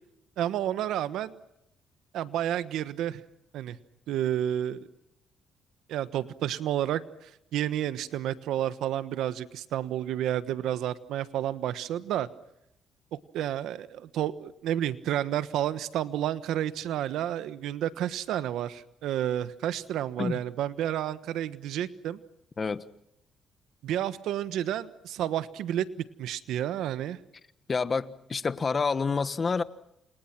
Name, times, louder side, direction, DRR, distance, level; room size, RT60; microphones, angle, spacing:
voice 1, 0.4-1.4 2.1-3.2 3.5-3.8 4.1-4.9 5.9-12.3 13.1-22.2 23.8-27.2, right 11 dB, 85° right, 1.3 m, -30 dB
voice 2, 27.7-29.6, left 5 dB, 35° left, 1.3 m, -28 dB
29.5 x 28.0 x 6.0 m
cardioid pair, 90°, 0 cm